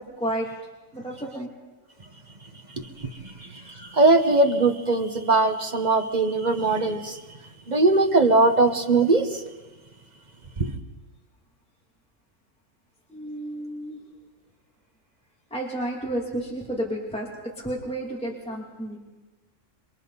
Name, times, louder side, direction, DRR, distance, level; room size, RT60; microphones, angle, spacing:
voice 1, 0.9-1.5 3.8-3.9 13.1-14.0 15.5-17.3 17.6-19.0, right 1 dB, 5° left, -2 dB, 2.8 m, -31 dB
voice 2, 2.7-7.2 7.7-9.4 10.6-10.7, right 3 dB, 35° right, 5 dB, 1.4 m, -21 dB
27.5 x 22.5 x 4.2 m, 1.2 s
omnidirectional pair, 1.3 m